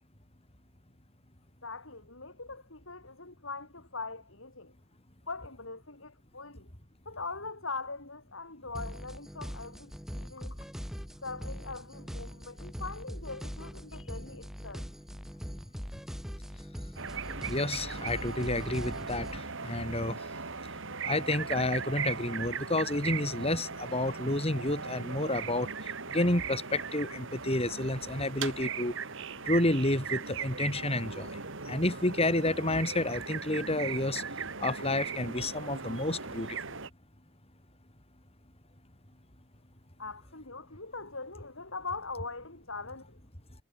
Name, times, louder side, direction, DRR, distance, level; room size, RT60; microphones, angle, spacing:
voice 1, 1.6-4.7 5.3-6.7 7.1-10.6 11.2-14.8 40.0-43.2, left 3 dB, 70° left, 5.2 m, -42 dB
sound 1, 8.7-19.4, equal, ahead, 7.1 m, -42 dB
sound 2, 17.0-36.9, right 5 dB, 65° right, 3.3 m, -38 dB
voice 2, 17.5-20.2 21.1-28.9 29.4-31.4 31.6-34.2 34.6-36.6, left 1 dB, 30° left, 6.5 m, -30 dB
head